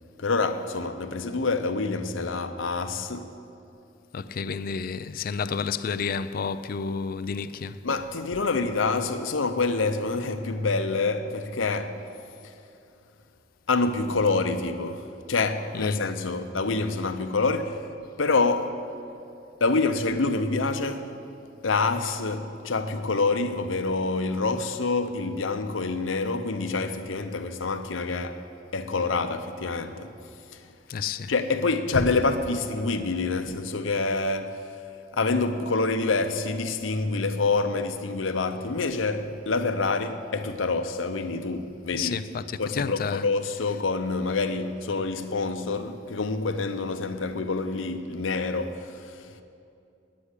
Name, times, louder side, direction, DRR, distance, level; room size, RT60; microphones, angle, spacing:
voice 1, 0.2-3.4 7.8-12.0 12.4-12.5 13.7-17.9 18.2-18.8 19.6-21.2 21.6-28.4 28.7-30.1 30.5-30.6 31.3-34.8 35.1-42.3 42.6-49.4, left 3 dB, 90° left, 0.8 m, -27 dB
voice 2, 4.1-7.8 15.7-16.0 30.9-31.3 41.9-43.3, left 5 dB, 50° left, 0.4 m, -30 dB
9.8 x 8.5 x 9.8 m
head